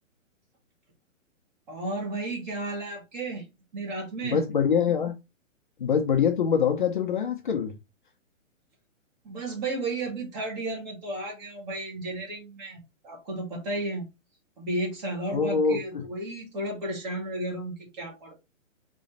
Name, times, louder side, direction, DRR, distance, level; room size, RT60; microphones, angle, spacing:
voice 1, 1.7-3.4 3.7-4.4 9.2-14.0 14.6-18.3, right 2 dB, 35° right, 2.3 m, -33 dB
voice 2, 4.2-5.1 5.8-7.7 15.3-16.0, left 7 dB, 40° left, 0.6 m, -24 dB
4.1 x 3.1 x 3.9 m
hypercardioid pair, 165°, 40 cm